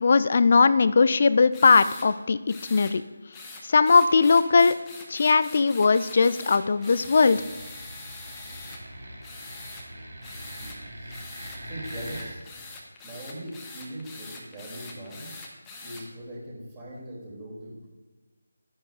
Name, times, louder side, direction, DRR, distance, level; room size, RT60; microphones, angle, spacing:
voice 1, 0.0-3.0 3.7-4.7 5.1-7.4, left 4 dB, 40° left, 15 dB, 0.4 m, -19 dB
sound 1, 1.5-2.1 2.5-2.9 3.3-8.8 9.2-9.8 10.2-10.8 11.1-16.0, left 3 dB, 10° left, 0.9 m, -43 dB
sound 2, 6.7-12.3, right 1 dB, 60° right, 2.2 m, -42 dB
voice 2, 10.4-11.2 11.5-12.7 13.0-15.3 15.8-17.9, right 1 dB, 20° right, -6 dB, 3.0 m, -41 dB
11.5 x 9.9 x 2.5 m, 1.3 s
figure-of-eight pair, 155°, 0 cm